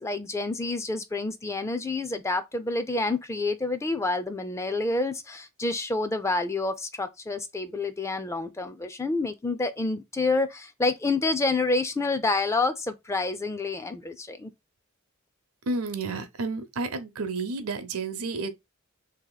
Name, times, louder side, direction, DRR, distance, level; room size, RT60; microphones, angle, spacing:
voice 1, 0.0-14.5, left 3 dB, 15° left, 0.4 m, -28 dB
voice 2, 15.7-18.5, right 3 dB, 90° right, 0.7 m, -31 dB
3.0 x 2.8 x 3.8 m
head